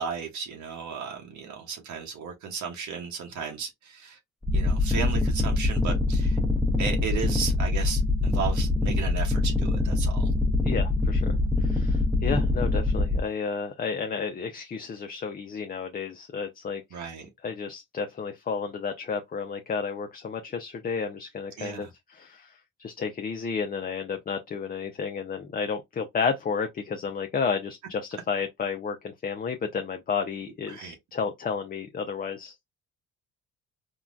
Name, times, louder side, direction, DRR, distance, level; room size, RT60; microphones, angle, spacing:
voice 1, 0.0-4.2 4.5-6.4 6.8-10.3 16.9-17.3 21.6-21.9 30.7-30.9, right 6 dB, 75° right, 0.9 m, -35 dB
sound 1, 4.4-13.2, left 2 dB, ahead, 0.7 m, -24 dB
voice 2, 10.6-11.3 11.6-17.1 17.4-32.6, left 5 dB, 30° left, 0.5 m, -32 dB
3.7 x 2.2 x 2.4 m
cardioid pair, 90°, 30 cm